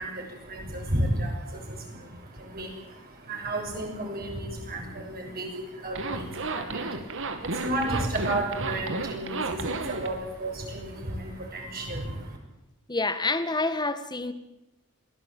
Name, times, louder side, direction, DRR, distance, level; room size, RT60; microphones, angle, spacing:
voice 1, 0.0-12.4, right 1 dB, 45° right, 1 dB, 6.9 m, -33 dB
Zipper (clothing), 5.9-10.1, right 3 dB, 65° right, 2.4 m, -32 dB
voice 2, 12.9-14.3, left 3 dB, 20° left, 11 dB, 1.6 m, -27 dB
23.0 x 17.5 x 9.0 m, 0.94 s
head